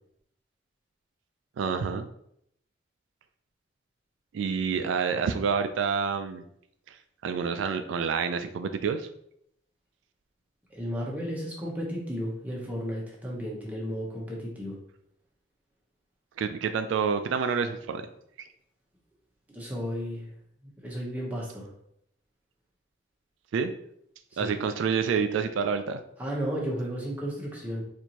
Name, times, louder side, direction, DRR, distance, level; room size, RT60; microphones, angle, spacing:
voice 1, 1.6-2.1 4.3-6.4 6.9-7.0 7.2-9.1 16.4-18.1 23.5-23.7 24.4-26.0, right 6 dB, 80° right, 8 dB, 0.3 m, -28 dB
voice 2, 10.7-14.8 19.5-20.3 20.6-21.7 24.3-24.6 26.2-27.8, equal, 10° right, -3 dB, 0.8 m, -33 dB
4.3 x 2.6 x 2.9 m, 0.72 s
head